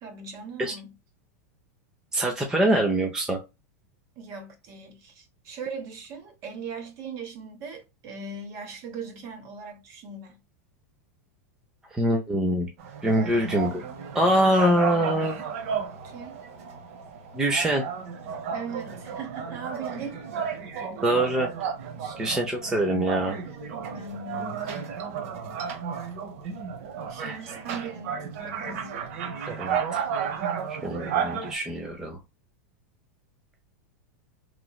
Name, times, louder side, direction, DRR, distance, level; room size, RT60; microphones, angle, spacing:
voice 1, 0.0-0.9 4.2-10.4 13.2-13.9 16.0-16.4 18.5-20.2 20.8-21.3 22.0-22.2 23.3-24.6 27.1-28.2 28.4-29.0, right 4 dB, 40° right, 1.0 m, -40 dB
voice 2, 2.1-3.4 11.9-12.7 13.0-13.8 14.1-15.4 17.3-17.8 21.0-21.5 22.2-23.4 27.2-27.4 29.5-30.0 30.7-32.2, right 1 dB, 5° right, 0.4 m, -24 dB
sound 1, 12.8-31.5, right 7 dB, 60° right, 0.8 m, -33 dB
3.0 x 2.9 x 2.3 m
supercardioid pair, 150°, 8 cm